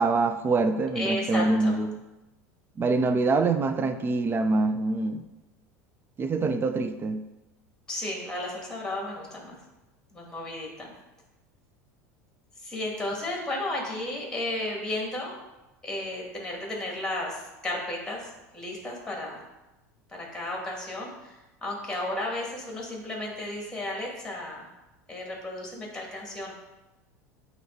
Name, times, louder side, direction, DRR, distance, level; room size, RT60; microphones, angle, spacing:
voice 1, 0.0-1.9 2.8-5.2 6.2-7.2, right 3 dB, 25° right, 10 dB, 0.5 m, -25 dB
voice 2, 1.0-1.7 7.9-9.6 10.1-10.9 12.6-15.4 15.8-19.4 20.1-24.7 25.1-26.5, left 1 dB, 10° left, -1 dB, 2.2 m, -33 dB
8.3 x 3.1 x 3.9 m, 1.0 s
hypercardioid pair, 85°, 8 cm